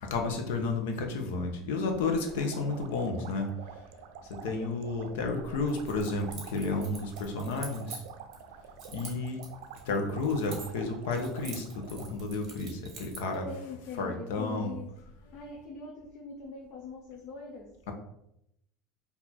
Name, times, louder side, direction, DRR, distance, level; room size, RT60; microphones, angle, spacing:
voice 1, 0.0-3.5 4.4-8.0 8.9-9.4 9.9-13.5 14.0-14.7, left 3 dB, 85° left, 4 dB, 1.0 m, -31 dB
sound 1, 2.1-12.1, right 7 dB, 70° right, 0.5 m, -48 dB
Keys jangling, 5.7-8.4 8.8-10.9 11.1-13.4, right 4 dB, 30° right, 1.3 m, -46 dB
voice 2, 13.4-15.0 15.3-17.7, left 4 dB, 45° left, -1 dB, 0.7 m, -42 dB
4.4 x 2.8 x 4.3 m, 0.79 s
cardioid pair, 170°, 0 cm